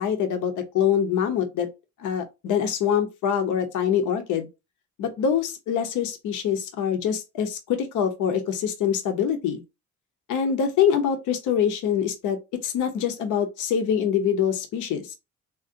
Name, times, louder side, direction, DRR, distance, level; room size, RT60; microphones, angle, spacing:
voice 1, 0.0-1.7 2.0-4.5 5.0-9.6 10.3-15.2, left 8 dB, 85° left, 0.7 m, -24 dB
3.8 x 2.1 x 2.5 m
cardioid pair, 90°, 30 cm